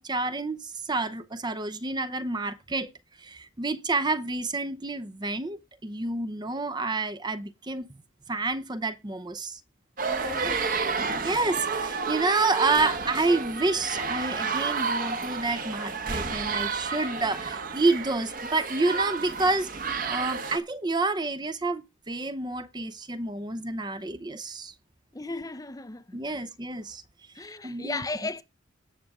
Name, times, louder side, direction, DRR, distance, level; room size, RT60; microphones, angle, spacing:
voice 1, 0.0-2.9 3.2-7.9 8.3-9.6 11.2-24.7 26.1-27.0 27.4-28.1, right 3 dB, 20° right, 0.7 m, -29 dB
voice 2, 10.0-10.7 25.1-26.2 27.3-28.4, left 3 dB, 20° left, 0.6 m, -36 dB
sound 1, 10.0-20.6, right 5 dB, 45° right, 1.2 m, -31 dB
17.5 x 6.7 x 3.6 m
head